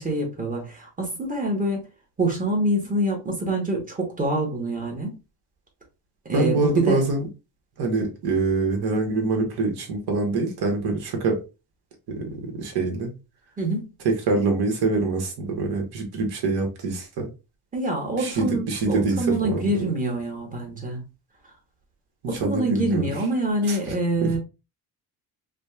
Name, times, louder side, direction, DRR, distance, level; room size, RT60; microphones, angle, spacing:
voice 1, 0.0-1.8 2.2-5.1 6.2-7.0 13.6-13.8 17.7-21.0 22.3-24.4, right 1 dB, 20° right, 1.2 m, -25 dB
voice 2, 6.3-7.2 7.8-11.4 12.1-13.1 14.0-17.3 18.2-19.8 22.2-23.0 23.7-23.8 24.2-24.3, right 3 dB, 70° right, 1.4 m, -25 dB
5.0 x 2.3 x 2.3 m
cardioid pair, 150°, 40 cm